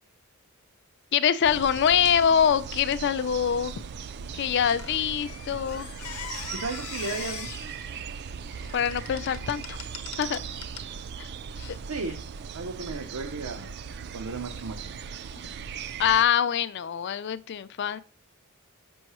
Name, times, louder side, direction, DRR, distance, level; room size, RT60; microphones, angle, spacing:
voice 1, 1.1-3.7 4.3-5.9 8.7-9.8 10.2-10.4 11.2-11.3 11.7-11.8 16.0-18.0, left 8 dB, 55° left, 0.4 m, -24 dB
sound 1, 1.4-16.2, right 6 dB, 50° right, 0.3 m, -39 dB
Squeak, 4.8-10.9 11.6-11.8, left 9 dB, 80° left, 0.8 m, -42 dB
voice 2, 6.6-7.7 11.9-12.1 12.5-13.7 14.0-14.9, right 3 dB, 85° right, 0.7 m, -35 dB
6.2 x 5.4 x 3.0 m
head